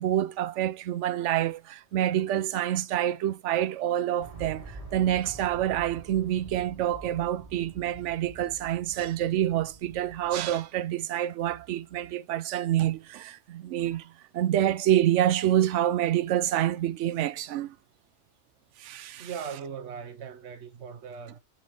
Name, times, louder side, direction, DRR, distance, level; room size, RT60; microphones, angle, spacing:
voice 1, 0.0-17.7 18.8-19.3, right 12 dB, 85° right, 0.9 m, -27 dB
sound 1, 4.2-10.4, right 3 dB, 30° right, 1.7 m, -46 dB
voice 2, 19.2-21.4, right 7 dB, 70° right, 1.2 m, -39 dB
7.2 x 4.3 x 3.4 m
omnidirectional pair, 1.2 m